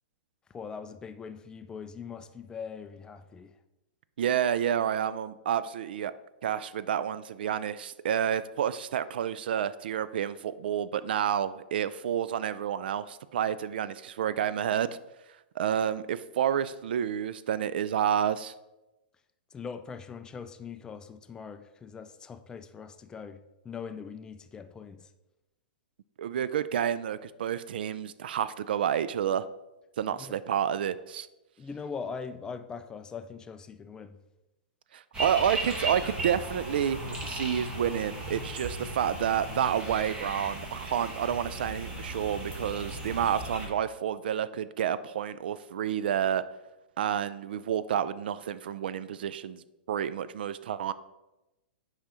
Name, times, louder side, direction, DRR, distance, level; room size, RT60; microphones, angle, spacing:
voice 1, 0.5-3.5 19.5-25.1 30.2-30.4 31.6-34.2, left 6 dB, 15° left, 0.3 m, -41 dB
voice 2, 4.2-6.1 6.4-14.9 15.6-18.5 26.2-29.5 30.0-31.3 34.9-46.4 47.0-50.9, right 9 dB, 70° right, 0.3 m, -29 dB
sound 1, 35.1-43.7, right 1 dB, 15° right, 1.4 m, -37 dB
6.0 x 4.9 x 4.2 m
hypercardioid pair, 135°, 5 cm